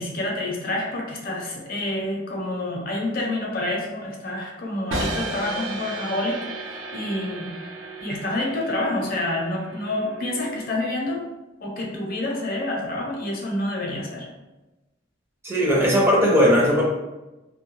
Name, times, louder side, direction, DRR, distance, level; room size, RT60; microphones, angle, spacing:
voice 1, 0.0-7.5 8.0-11.2 11.6-14.3, left 1 dB, 50° left, -1 dB, 0.6 m, -28 dB
sound 1, 4.9-10.9, right 2 dB, 85° right, 0.6 m, -34 dB
voice 2, 15.4-16.8, equal, 15° right, -4 dB, 0.4 m, -18 dB
2.3 x 2.2 x 3.0 m, 1.1 s
head